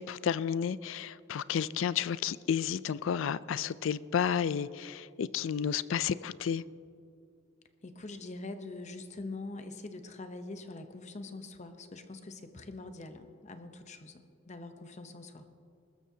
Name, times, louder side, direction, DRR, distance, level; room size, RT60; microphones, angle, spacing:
voice 1, 0.0-6.6, left 8 dB, 65° left, 18 dB, 0.4 m, -31 dB
voice 2, 7.8-15.5, left 2 dB, 35° left, 8 dB, 0.8 m, -44 dB
20.0 x 13.5 x 2.8 m, 2.4 s
head